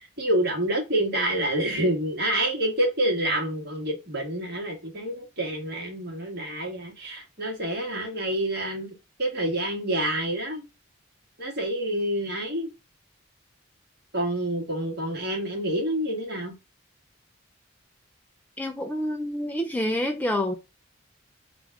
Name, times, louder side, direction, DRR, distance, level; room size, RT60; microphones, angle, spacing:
voice 1, 0.2-8.9 9.2-10.6 11.4-12.7 14.1-16.5, right 1 dB, 50° right, 1.6 m, -27 dB
voice 2, 18.6-20.6, left 1 dB, 10° left, 0.3 m, -27 dB
3.6 x 2.5 x 4.5 m
head